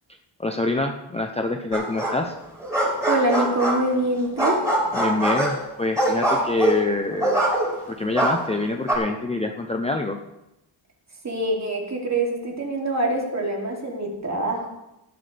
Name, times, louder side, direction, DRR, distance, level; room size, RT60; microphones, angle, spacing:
voice 1, 0.4-2.4 4.9-7.4 7.9-10.2, left 2 dB, 15° left, 3 dB, 0.7 m, -26 dB
sound 1, 1.7-2.3 2.6-4.0 4.4-7.9 8.2-9.0, right 1 dB, 5° right, 5.1 m, -23 dB
voice 2, 3.1-4.7 11.2-14.7, right 1 dB, 35° right, -1 dB, 3.0 m, -25 dB
18.0 x 12.0 x 3.5 m, 0.91 s
wide cardioid pair, 155°, 49 cm